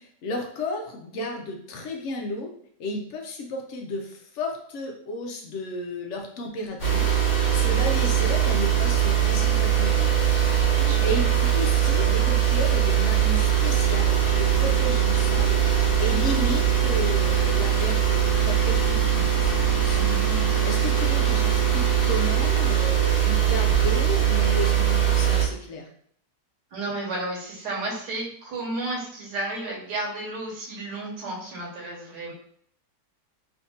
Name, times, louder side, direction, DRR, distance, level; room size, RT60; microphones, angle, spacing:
voice 1, 0.2-2.5 2.8-10.3 10.7-20.0 20.6-25.9, left 1 dB, 85° left, 2 dB, 0.6 m, -33 dB
sound 1, 6.8-25.4, right 9 dB, 35° left, 0.9 m, -21 dB
voice 2, 10.8-11.3 19.1-19.3 19.9-20.5 26.7-32.3, right 2 dB, 75° right, -3 dB, 1.4 m, -33 dB
3.5 x 2.6 x 2.7 m, 0.64 s
omnidirectional pair, 1.8 m